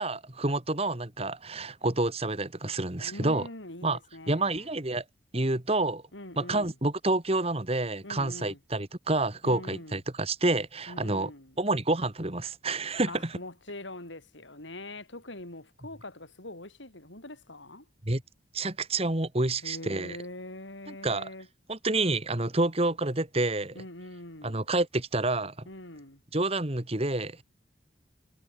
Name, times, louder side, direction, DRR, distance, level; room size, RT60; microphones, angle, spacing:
voice 1, 0.0-3.5 3.8-4.0 4.3-5.0 5.3-6.0 6.4-11.3 11.6-13.4 18.1-18.2 18.5-20.2 20.9-21.3 21.7-23.8 24.4-25.7 26.3-27.4, right 2 dB, 30° right, 1.9 m, -28 dB
voice 2, 3.0-4.7 6.1-6.7 8.0-8.6 9.4-10.0 10.9-11.6 13.1-17.9 19.6-21.5 23.7-24.7 25.7-26.2, left 1 dB, 80° left, 6.5 m, -43 dB
head